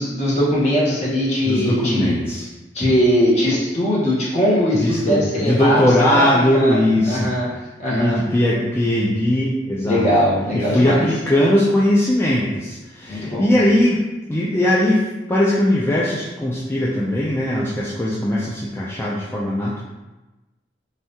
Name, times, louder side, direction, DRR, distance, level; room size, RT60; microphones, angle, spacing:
voice 1, 0.0-2.2 2.7-5.8 6.1-6.8 7.0-7.5 7.8-8.2 9.8-11.0 13.1-13.5, equal, 40° left, -7 dB, 1.1 m, -20 dB
voice 2, 1.4-2.5 4.7-7.3 7.9-10.1 10.5-19.8, left 1 dB, 15° left, -6 dB, 0.3 m, -19 dB
3.4 x 2.7 x 2.7 m, 1.1 s
head